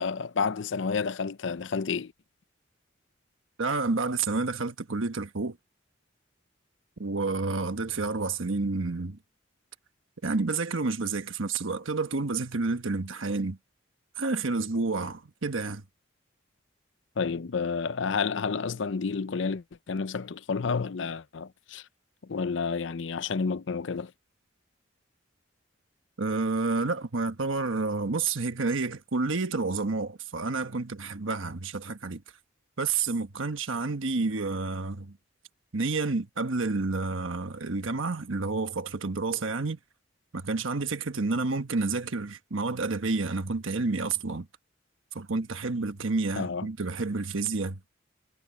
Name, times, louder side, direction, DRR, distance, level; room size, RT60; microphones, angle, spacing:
voice 1, 0.0-2.1 17.2-21.8 22.2-24.1 46.4-46.7, left 5 dB, 70° left, 0.6 m, -30 dB
voice 2, 3.6-5.6 7.0-9.2 10.2-13.6 14.2-15.8 26.2-32.2 32.8-35.2 35.7-39.8 40.3-44.5 45.1-47.8, right 3 dB, 85° right, 1.2 m, -29 dB
head